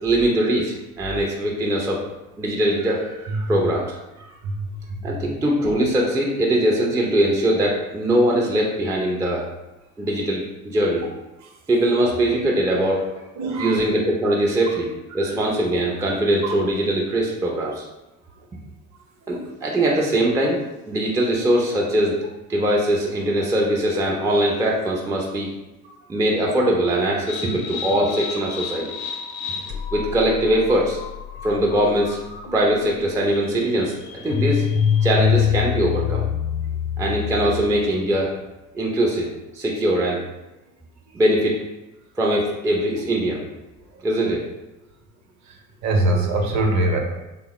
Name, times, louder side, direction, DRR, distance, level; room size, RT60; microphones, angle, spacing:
voice 1, 0.0-2.0 2.4-3.9 5.0-9.4 10.0-11.0 11.7-13.0 13.6-14.9 15.1-17.8 19.3-22.2 22.5-25.5 26.1-28.9 29.9-31.0 31.4-32.2 32.5-33.9 34.2-34.6 35.0-36.2 37.0-38.3 38.7-39.3 39.5-40.2 41.1-41.6 42.2-43.4 44.0-44.4, right 1 dB, 10° right, -2 dB, 0.4 m, -21 dB
voice 2, 13.4-13.8 15.1-15.4 16.4-16.5 45.8-47.0, right 2 dB, 45° right, 2 dB, 0.7 m, -23 dB
sound 1, 27.3-37.9, left 8 dB, 50° left, 0.6 m, -26 dB
3.3 x 2.1 x 2.9 m, 1.0 s
hypercardioid pair, 65°, 42 cm